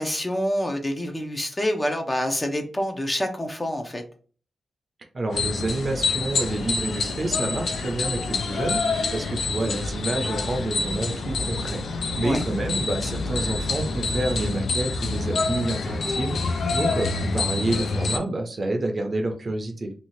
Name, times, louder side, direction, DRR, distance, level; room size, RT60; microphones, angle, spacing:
voice 1, 0.0-4.0 12.2-12.4, equal, 20° left, 0.5 m, -27 dB
voice 2, 5.1-19.9, right 2 dB, 35° right, 0.6 m, -28 dB
sound 1, 5.3-18.2, left 4 dB, 75° left, 0.4 m, -27 dB
2.7 x 2.4 x 3.1 m
wide cardioid pair, 115°, 0 cm